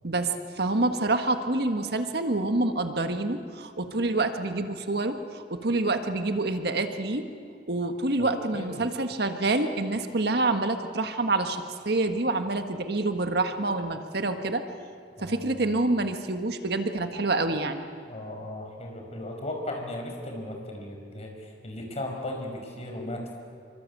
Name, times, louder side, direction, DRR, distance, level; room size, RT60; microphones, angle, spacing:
voice 1, 0.0-7.3 7.7-14.6 15.2-17.8, right 2 dB, 65° right, 7 dB, 1.6 m, -27 dB
voice 2, 8.2-8.9 15.2-15.6 18.1-23.3, left 1 dB, 40° left, 2 dB, 5.3 m, -36 dB
27.0 x 24.0 x 8.6 m, 2.3 s
head